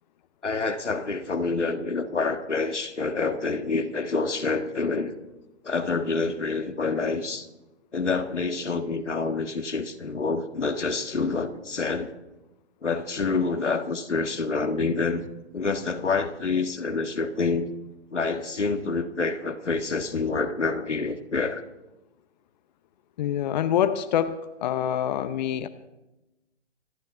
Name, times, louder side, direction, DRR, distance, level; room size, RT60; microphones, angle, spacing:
voice 1, 0.4-5.1 5.6-7.5 7.9-12.1 12.8-15.2 15.5-17.7 18.1-21.6, left 4 dB, 90° left, 7 dB, 1.6 m, -27 dB
voice 2, 23.2-25.7, left 10 dB, 40° left, 12 dB, 0.8 m, -26 dB
26.0 x 9.5 x 4.4 m, 0.99 s
figure-of-eight pair, 135°, 35 cm